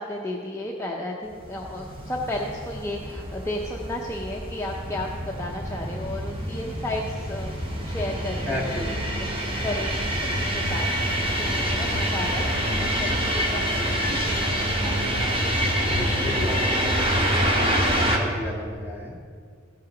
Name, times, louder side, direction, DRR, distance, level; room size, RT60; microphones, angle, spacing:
voice 1, 0.0-7.5 7.8-8.8 9.6-11.1 11.4-15.7, left 1 dB, 15° left, -2 dB, 0.6 m, -33 dB
sound 1, 1.4-18.2, equal, 25° right, 1.3 m, -26 dB
voice 2, 8.5-9.2 15.8-19.2, left 1 dB, 10° right, -3 dB, 1.8 m, -33 dB
16.5 x 5.7 x 5.1 m, 2.1 s
head